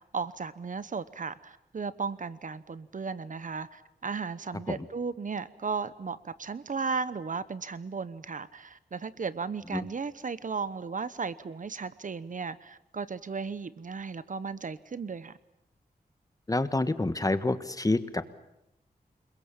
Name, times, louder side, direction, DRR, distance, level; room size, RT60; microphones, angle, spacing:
voice 1, 0.1-15.3, right 5 dB, 55° right, 16 dB, 1.0 m, -35 dB
voice 2, 16.5-18.2, left 2 dB, 20° left, 12 dB, 1.4 m, -28 dB
28.5 x 22.0 x 7.3 m, 0.85 s
wide cardioid pair, 95°, 16 cm